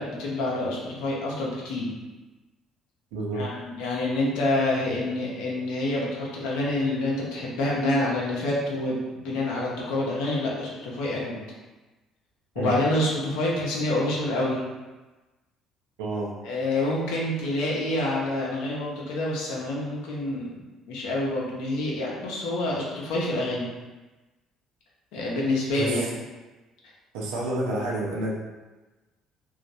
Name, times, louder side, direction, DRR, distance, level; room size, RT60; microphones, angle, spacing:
voice 1, 0.0-1.9 3.3-11.4 12.5-14.6 16.4-20.5 20.9-23.7 25.1-26.1, left 1 dB, 65° left, -4 dB, 0.7 m, -27 dB
voice 2, 3.1-3.4 12.6-12.7 16.0-16.3 25.8-26.0 27.1-28.3, right 2 dB, 65° right, -3 dB, 0.5 m, -29 dB
3.0 x 2.4 x 2.6 m, 1.2 s
figure-of-eight pair, 50°, 0 cm